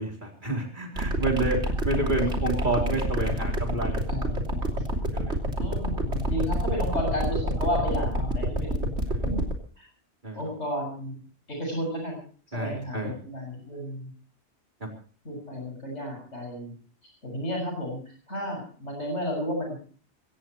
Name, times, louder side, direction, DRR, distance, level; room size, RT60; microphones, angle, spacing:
voice 1, 0.0-4.4 4.9-5.4 9.1-9.3 10.2-10.4 12.5-13.1 14.8-14.9, right 2 dB, 45° right, 0 dB, 4.3 m, -30 dB
sound 1, 1.0-9.5, right 1 dB, 85° right, 3.4 m, -27 dB
voice 2, 2.3-2.8 4.1-4.7 5.6-8.9 9.2-9.4 9.8-9.9 10.3-11.2 11.5-12.2 12.5-14.1 15.2-16.7 17.0-19.8, equal, 85° left, 1 dB, 7.6 m, -33 dB
23.0 x 18.0 x 3.1 m, 0.43 s
omnidirectional pair, 1.2 m